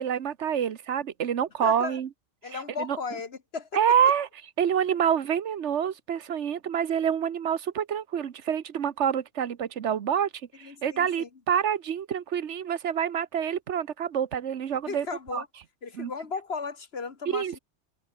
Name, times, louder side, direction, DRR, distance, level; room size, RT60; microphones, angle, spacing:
voice 1, 0.0-2.1 2.5-3.0 3.7-4.3 4.6-10.3 10.5-15.1 15.3-15.4 15.9-16.1 17.3-17.6, right 8 dB, 80° right, 1.3 m, -27 dB
voice 2, 1.6-2.0 2.4-3.7 4.9-5.0 10.6-11.3 14.9-15.5 15.8-17.6, left 5 dB, 60° left, 1.8 m, -36 dB
open air
omnidirectional pair, 1.2 m